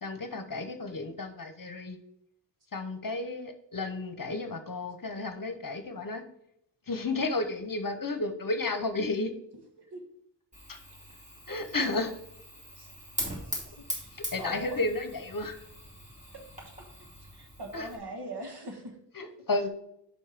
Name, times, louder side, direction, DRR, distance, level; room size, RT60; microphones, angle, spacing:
voice 1, 0.0-2.0 2.7-6.2 6.9-9.3 10.7-10.8 11.5-12.1 14.1-15.6 17.7-17.9 19.2-19.7, left 2 dB, 50° left, 8 dB, 0.9 m, -32 dB
Fire, 10.5-18.0, equal, 15° right, 2.5 m, -41 dB
voice 2, 13.7-14.1 14.4-14.8 16.3-16.9 17.3-19.0, right 1 dB, 60° right, 3 dB, 1.5 m, -41 dB
5.4 x 5.4 x 5.1 m, 0.76 s
wide cardioid pair, 65°, 44 cm